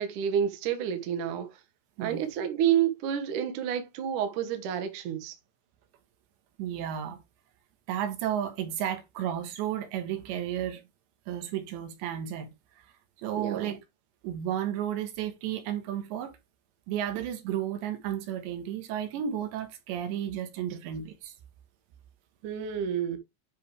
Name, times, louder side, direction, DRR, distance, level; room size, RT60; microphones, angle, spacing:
voice 1, 0.0-1.5 2.0-5.4 13.4-13.7 22.4-23.2, right 9 dB, 60° right, 2.4 m, -29 dB
voice 2, 6.6-7.2 7.9-10.8 11.3-12.5 13.2-13.8 14.2-16.3 16.9-21.3, right 10 dB, 80° right, 3.5 m, -33 dB
10.0 x 5.3 x 3.4 m
omnidirectional pair, 5.2 m